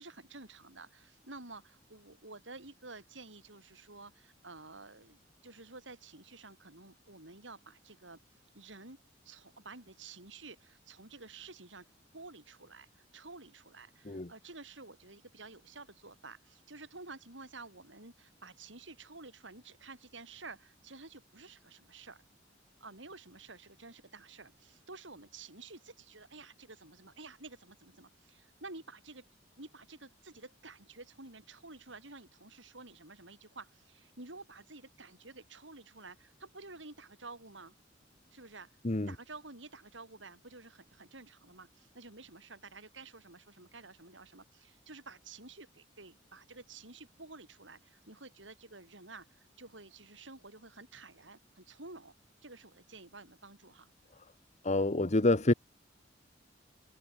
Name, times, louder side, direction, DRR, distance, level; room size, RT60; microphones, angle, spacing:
voice 1, 0.0-9.0 9.2-11.9 12.1-22.2 22.8-29.3 29.6-37.7 38.3-38.7 39.1-52.1 52.4-53.9, right 3 dB, 75° right, 6.9 m, -51 dB
voice 2, 54.6-55.5, left 2 dB, 40° left, 1.3 m, -27 dB
head